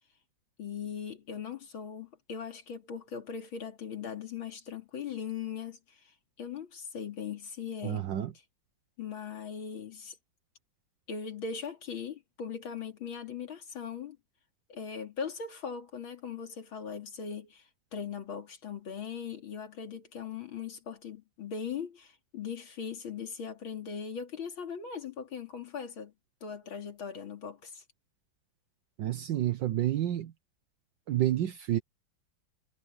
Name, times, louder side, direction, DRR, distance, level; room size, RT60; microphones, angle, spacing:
voice 1, 0.6-6.0 6.4-8.0 9.0-10.1 11.1-14.2 14.7-17.6 17.9-26.1 26.4-27.8, left 7 dB, 85° left, 3.3 m, -39 dB
voice 2, 7.8-8.3 29.0-30.3 31.1-31.8, right 12 dB, 70° right, 1.5 m, -29 dB
omnidirectional pair, 2.2 m